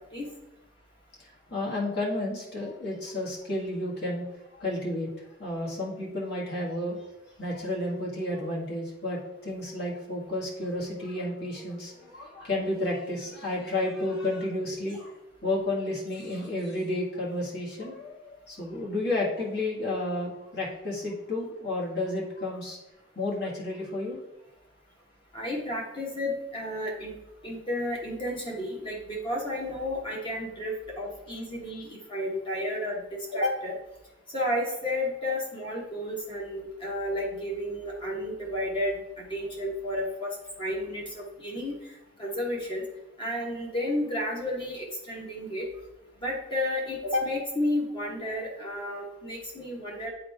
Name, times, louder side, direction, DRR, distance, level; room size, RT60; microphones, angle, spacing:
voice 1, 1.5-4.2 4.5-5.1 5.4-7.0 7.4-15.1 15.4-22.8 23.1-24.2, left 1 dB, 50° left, -4 dB, 1.7 m, -31 dB
voice 2, 25.3-27.1 27.4-33.7 34.3-40.3 40.6-41.7 42.2-42.8 43.2-45.6 46.2-50.1, left 1 dB, 25° left, -3 dB, 1.1 m, -32 dB
9.3 x 3.9 x 3.4 m, 0.94 s
head